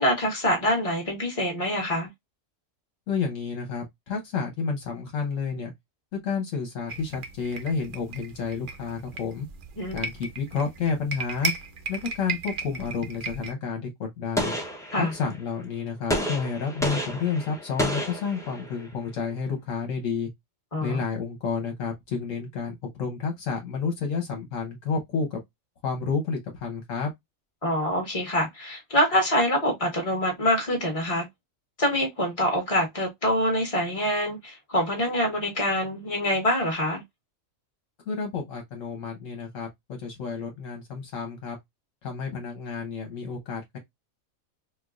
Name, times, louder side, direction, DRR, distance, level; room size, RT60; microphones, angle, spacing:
voice 1, 0.0-2.1 9.8-10.0 14.9-15.1 20.7-21.0 27.6-31.3 31.8-37.0, equal, 25° left, 1.5 m, -25 dB
voice 2, 3.1-5.7 6.1-9.5 9.9-11.5 11.9-14.5 14.9-20.3 20.8-25.4 25.8-27.1 38.1-41.6 42.0-43.8, left 5 dB, 70° left, 1.3 m, -30 dB
sound 1, 6.9-13.5, right 4 dB, 60° right, 0.5 m, -36 dB
Gunshot gunfire, 14.4-15.4 16.1-18.9, equal, 5° left, 0.5 m, -30 dB
4.6 x 2.3 x 2.3 m
omnidirectional pair, 1.4 m